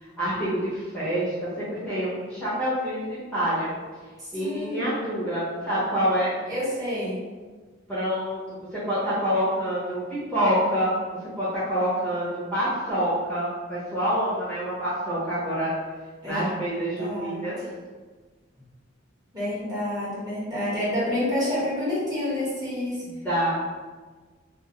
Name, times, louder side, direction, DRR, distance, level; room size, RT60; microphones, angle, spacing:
voice 1, 0.2-3.7 4.3-6.3 7.9-15.8 16.2-17.6 23.0-23.5, equal, 5° left, -12 dB, 0.9 m, -27 dB
voice 2, 4.2-5.1 6.5-7.2 16.2-16.4 17.0-17.5 19.3-23.0, left 1 dB, 20° right, -10 dB, 1.1 m, -28 dB
2.5 x 2.4 x 3.0 m, 1.4 s
head